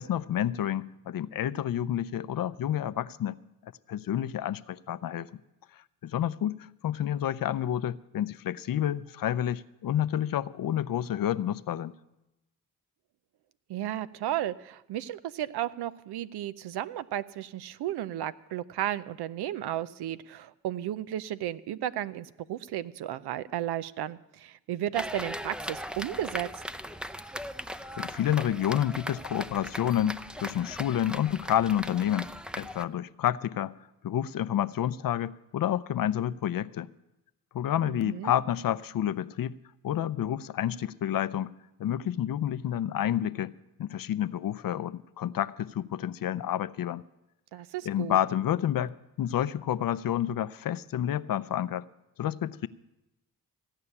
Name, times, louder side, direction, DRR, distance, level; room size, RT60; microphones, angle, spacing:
voice 1, 0.0-3.4 3.6-5.3 6.0-11.9 28.0-33.7 34.0-36.9 37.5-39.6 39.8-41.5 41.8-43.5 43.8-47.0 47.9-51.8 52.2-52.7, left 11 dB, 60° left, 16 dB, 0.6 m, -29 dB
voice 2, 13.7-26.5 37.9-38.3 47.5-48.2, right 12 dB, 80° right, 15 dB, 0.6 m, -34 dB
sound 1, 24.9-32.8, equal, ahead, 0.5 m, -39 dB
16.0 x 5.6 x 9.8 m, 0.93 s
cardioid pair, 60°, 39 cm